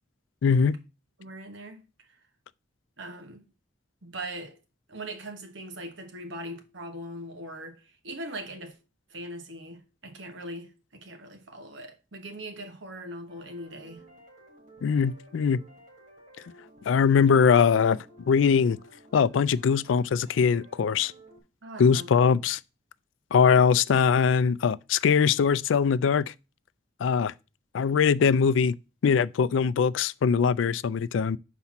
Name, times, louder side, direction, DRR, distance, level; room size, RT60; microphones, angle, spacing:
voice 1, 0.4-0.8 14.8-15.6 16.9-18.0 18.3-18.8 19.1-21.1 21.8-22.6 23.3-26.3 27.0-27.3 27.7-28.7 29.0-31.4, left 6 dB, 80° left, 0.3 m, -22 dB
voice 2, 1.2-1.8 2.1-2.2 3.0-3.5 4.0-4.6 4.9-8.8 9.1-14.0 21.6-22.1 23.5-23.6, right 1 dB, 75° right, 1.3 m, -40 dB
sound 1, 13.3-21.4, right 1 dB, 40° right, 3.8 m, -54 dB
5.7 x 4.1 x 5.9 m
head